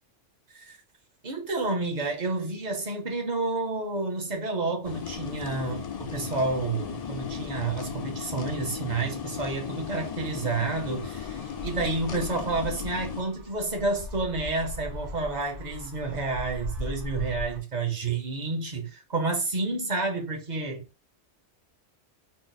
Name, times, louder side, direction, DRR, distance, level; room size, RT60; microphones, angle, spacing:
voice 1, 1.2-20.8, right 3 dB, 40° right, 0.8 m, -30 dB
sound 1, 4.8-13.2, left 7 dB, 55° left, 0.4 m, -36 dB
sound 2, 10.5-17.6, left 1 dB, 75° right, 1.5 m, -39 dB
4.1 x 2.0 x 4.0 m
omnidirectional pair, 1.3 m